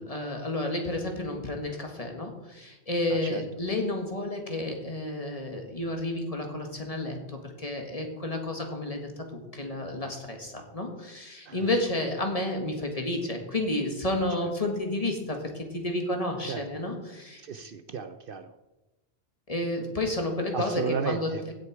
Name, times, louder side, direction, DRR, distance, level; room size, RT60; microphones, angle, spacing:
voice 1, 0.0-17.4 19.5-21.5, left 1 dB, 35° left, 3 dB, 1.8 m, -31 dB
voice 2, 3.1-3.4 11.5-11.7 16.4-16.6 17.4-18.5 20.5-21.4, right 6 dB, 60° right, 10 dB, 0.8 m, -33 dB
16.0 x 6.6 x 4.7 m, 1.1 s
omnidirectional pair, 1.1 m